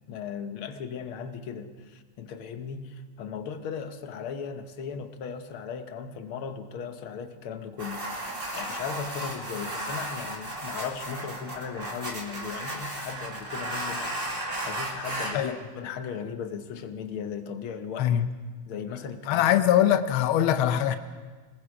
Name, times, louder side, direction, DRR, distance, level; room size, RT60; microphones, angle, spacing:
voice 1, 0.1-18.1 18.7-19.6, left 6 dB, 60° left, 8 dB, 1.6 m, -37 dB
sound 1, 7.8-15.4, right 1 dB, 20° right, 2.2 m, -34 dB
voice 2, 18.0-18.3 19.3-21.0, left 11 dB, 90° left, 10 dB, 1.1 m, -22 dB
27.5 x 20.0 x 4.9 m, 1.4 s
omnidirectional pair, 3.4 m